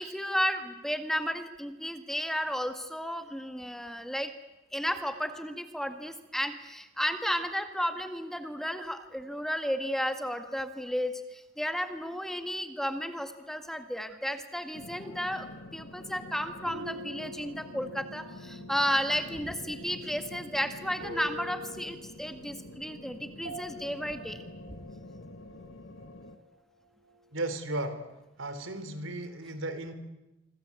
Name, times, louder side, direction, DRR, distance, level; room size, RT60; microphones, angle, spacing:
voice 1, 0.0-4.3 4.7-24.4, equal, ahead, 7 dB, 1.8 m, -33 dB
sound 1, 14.7-26.4, left 1 dB, 75° left, 1.9 m, -47 dB
sound 2, 16.7-26.6 26.8-27.5, equal, 55° right, 8.0 m, -47 dB
voice 2, 27.3-28.0 28.4-29.9, right 2 dB, 90° right, 11 dB, 3.4 m, -35 dB
26.0 x 25.5 x 8.4 m, 0.98 s
head